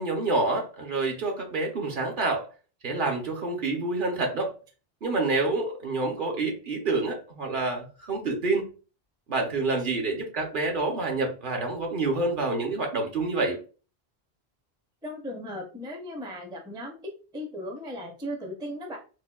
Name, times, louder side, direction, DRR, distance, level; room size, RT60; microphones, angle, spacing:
voice 1, 0.0-2.5 2.8-4.5 5.0-8.6 9.3-13.6, right 3 dB, 55° right, 2 dB, 0.8 m, -27 dB
voice 2, 15.0-19.0, equal, 5° right, 2 dB, 0.4 m, -37 dB
4.2 x 2.2 x 2.2 m, 0.35 s
omnidirectional pair, 1.1 m